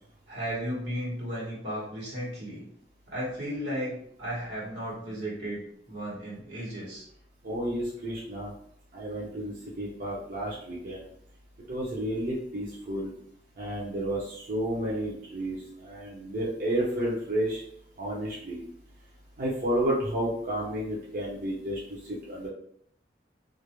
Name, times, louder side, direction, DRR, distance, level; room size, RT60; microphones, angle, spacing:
voice 1, 0.3-2.6 3.1-7.0, equal, 85° right, -6 dB, 1.2 m, -35 dB
voice 2, 7.4-8.5 8.9-11.0 11.7-13.1 13.6-15.6 15.8-17.6 18.0-18.6 19.4-21.8 22.3-22.5, right 1 dB, 50° right, -6 dB, 0.6 m, -31 dB
2.4 x 2.1 x 3.0 m, 0.69 s
head